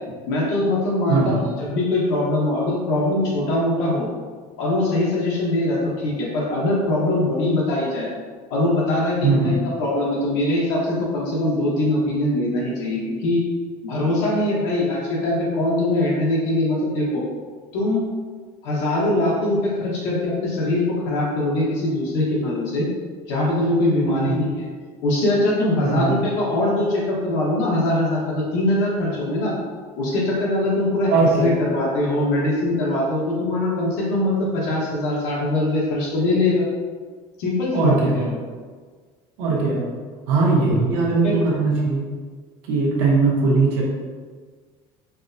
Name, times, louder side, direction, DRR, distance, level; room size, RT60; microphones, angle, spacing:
voice 1, 0.3-4.1 4.6-8.1 8.5-9.5 9.8-13.4 13.8-17.2 17.7-18.0 18.6-22.9 23.3-24.5 25.0-29.5 30.0-31.1 31.4-36.7 37.4-38.3 41.2-41.3, left 1 dB, 75° left, -5 dB, 1.0 m, -22 dB
voice 2, 1.1-1.4 9.2-9.6 24.0-24.4 25.8-26.1 31.1-31.5 37.7-38.2 39.4-39.8 40.3-42.0 42.7-43.8, right 3 dB, 80° right, -4 dB, 0.9 m, -19 dB
4.6 x 2.1 x 2.6 m, 1.5 s
cardioid pair, 170°, 13 cm